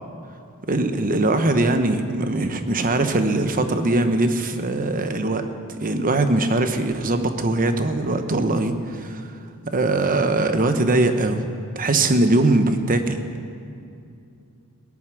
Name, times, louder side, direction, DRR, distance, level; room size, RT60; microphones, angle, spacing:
voice 1, 0.7-5.4 5.8-9.3 9.6-11.4 11.7-13.2, right 2 dB, 40° right, 8 dB, 1.0 m, -21 dB
17.5 x 11.0 x 6.3 m, 2.5 s
head